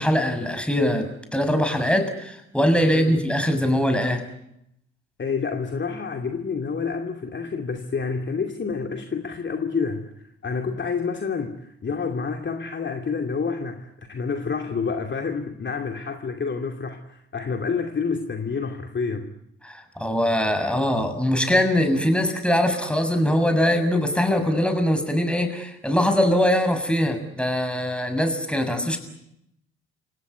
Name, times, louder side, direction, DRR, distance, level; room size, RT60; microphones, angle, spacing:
voice 1, 0.0-4.2 19.6-29.0, equal, 5° left, 7 dB, 6.7 m, -22 dB
voice 2, 2.8-3.2 5.2-10.1 10.4-19.3, left 5 dB, 35° left, 4 dB, 2.6 m, -28 dB
29.0 x 17.5 x 9.7 m, 0.79 s
hypercardioid pair, 50°, 31 cm